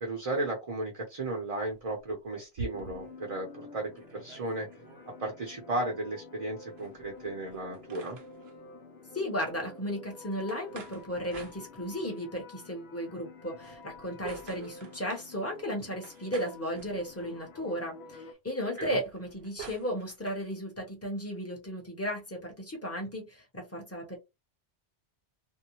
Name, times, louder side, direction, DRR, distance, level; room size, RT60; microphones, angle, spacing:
voice 1, 0.0-4.7 5.2-8.2 18.8-19.0, right 2 dB, 35° right, 0.7 m, -34 dB
sound 1, 1.7-3.3 3.7-3.8 4.0-5.1 6.7-8.6 10.5-12.2 13.5-15.3 16.0-17.4 18.9-20.4, right 4 dB, 65° right, 0.9 m, -47 dB
sound 2, 2.7-18.3, left 3 dB, 65° left, 0.9 m, -50 dB
voice 2, 9.1-24.2, equal, 15° left, 0.8 m, -35 dB
2.7 x 2.1 x 2.9 m
omnidirectional pair, 1.2 m